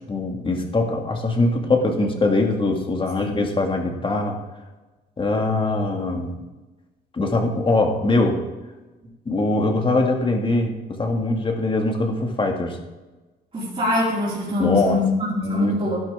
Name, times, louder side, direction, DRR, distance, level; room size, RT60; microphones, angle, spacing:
voice 1, 0.1-4.4 5.2-6.4 7.1-8.4 9.3-12.8 14.6-15.0 15.4-15.8, left 2 dB, 30° left, 3 dB, 1.9 m, -22 dB
voice 2, 13.5-16.0, left 2 dB, 35° right, -9 dB, 4.2 m, -23 dB
12.0 x 11.0 x 3.6 m, 1.2 s
cardioid pair, 105°, 18 cm